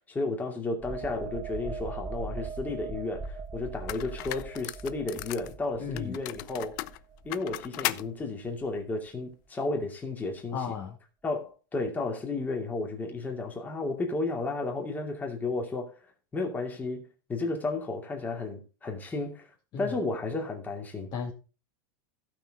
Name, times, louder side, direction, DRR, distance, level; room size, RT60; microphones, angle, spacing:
voice 1, 0.1-6.8 7.2-10.6 11.2-15.9 16.3-17.0 17.3-19.5 19.8-21.1, left 3 dB, 15° left, 2.5 m, -33 dB
sound 1, 0.8-8.2 8.6-8.8, right 4 dB, 20° right, 0.7 m, -40 dB
sound 2, 3.2-3.3 3.9-5.5 6.0-8.1, left 18 dB, 55° left, 0.6 m, -36 dB
voice 2, 5.8-6.2 10.5-11.0 19.7-19.9 21.1-21.3, left 6 dB, 35° left, 1.9 m, -34 dB
16.0 x 6.0 x 3.6 m
supercardioid pair, 145°, 12 cm